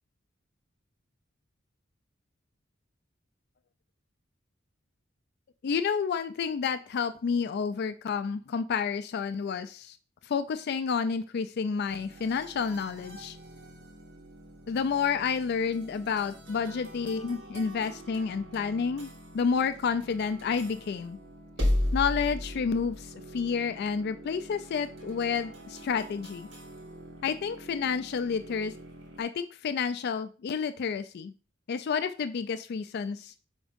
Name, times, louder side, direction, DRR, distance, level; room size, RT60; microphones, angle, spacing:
voice 1, 5.6-10.0 10.3-13.4 14.7-19.1 19.3-21.2 21.9-26.5 27.2-28.7 29.2-31.3 31.7-33.3, left 6 dB, 55° left, 11 dB, 0.3 m, -30 dB
sound 1, 11.9-29.2, left 1 dB, 65° right, 2.3 m, -38 dB
5.2 x 3.5 x 5.1 m, 0.37 s
head